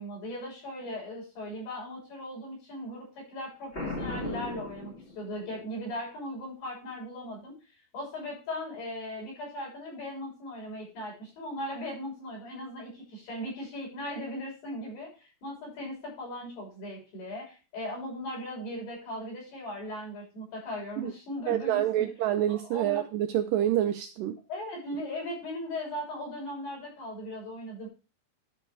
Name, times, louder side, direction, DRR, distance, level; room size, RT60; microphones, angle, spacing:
voice 1, 0.0-7.5 7.9-22.1 22.5-23.0 24.5-27.9, left 1 dB, 80° left, -4 dB, 8.0 m, -38 dB
Boom, 3.7-5.6, left 2 dB, 45° left, 0.8 m, -36 dB
voice 2, 21.5-24.4, right 12 dB, 85° right, 7 dB, 1.9 m, -27 dB
12.0 x 5.3 x 4.6 m, 0.34 s
omnidirectional pair, 4.6 m